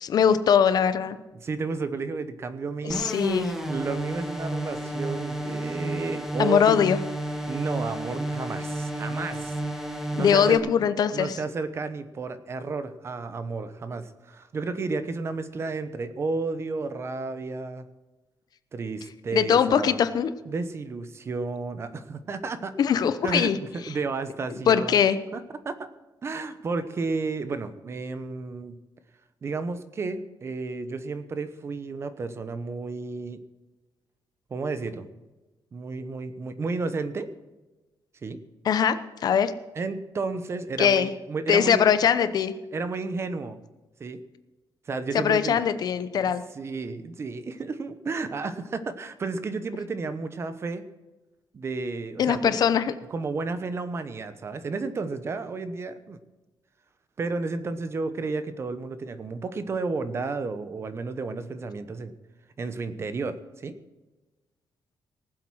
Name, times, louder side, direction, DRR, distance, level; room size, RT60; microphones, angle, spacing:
voice 1, 0.0-1.2 2.8-3.5 6.4-7.0 10.2-11.4 19.3-20.3 22.8-23.6 24.7-25.2 38.6-39.5 40.8-41.1 41.5-42.5 45.1-46.4 52.2-52.9, left 8 dB, 55° left, 12 dB, 0.8 m, -21 dB
voice 2, 1.3-3.2 3.7-6.9 7.5-9.5 10.1-10.7 11.1-17.8 18.7-20.0 20.4-22.7 23.2-25.0 25.3-25.9 26.2-28.7 29.4-33.4 34.5-35.1 35.7-37.3 38.2-38.4 39.8-41.8 42.7-43.6 44.0-44.2 44.9-45.6 46.5-50.8 51.5-52.6 53.1-56.2 57.2-62.1 62.6-63.8, right 4 dB, 35° right, 11 dB, 1.0 m, -32 dB
sound 1, 2.9-10.6, right 1 dB, 5° right, 1.5 m, -31 dB
19.0 x 7.8 x 6.2 m, 1.1 s
wide cardioid pair, 175°, 8 cm